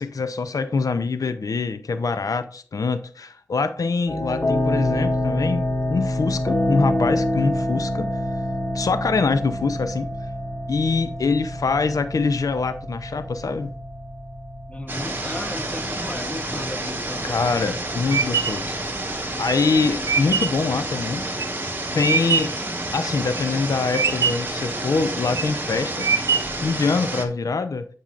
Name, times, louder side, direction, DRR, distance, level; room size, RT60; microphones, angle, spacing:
voice 1, 0.0-5.6 5.9-8.1 8.7-10.1 10.7-13.7 17.2-18.8 19.4-21.2 21.9-22.5 22.9-26.1 26.6-27.9, left 4 dB, 80° left, 0.5 m, -24 dB
sound 1, 4.1-20.6, left 1 dB, 45° left, 1.5 m, -28 dB
voice 2, 14.7-17.4, left 1 dB, 20° left, 1.0 m, -35 dB
sound 2, 14.9-27.2, right 1 dB, 35° right, 1.5 m, -29 dB
sound 3, 17.2-22.7 23.1-23.7 23.9-24.6 25.1-25.6 26.0-26.7, right 6 dB, 65° right, 0.6 m, -24 dB
10.5 x 5.4 x 2.5 m
wide cardioid pair, 80°, 6 cm